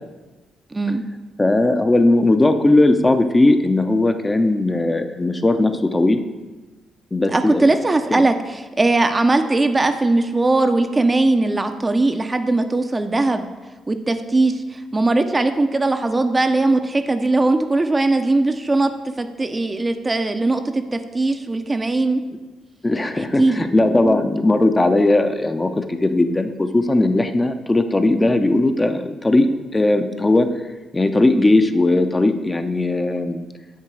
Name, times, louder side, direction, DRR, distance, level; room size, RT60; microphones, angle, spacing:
voice 1, 0.7-1.0 7.3-8.3 8.8-13.5 13.9-18.9 19.2-22.2 23.4-23.6, right 2 dB, 25° right, 7 dB, 0.6 m, -19 dB
voice 2, 1.4-6.2 7.1-7.7 8.1-8.2 22.8-30.5 30.9-33.5, left 2 dB, 25° left, 7 dB, 0.7 m, -18 dB
7.4 x 3.7 x 6.1 m, 1.2 s
hypercardioid pair, 45°, 0 cm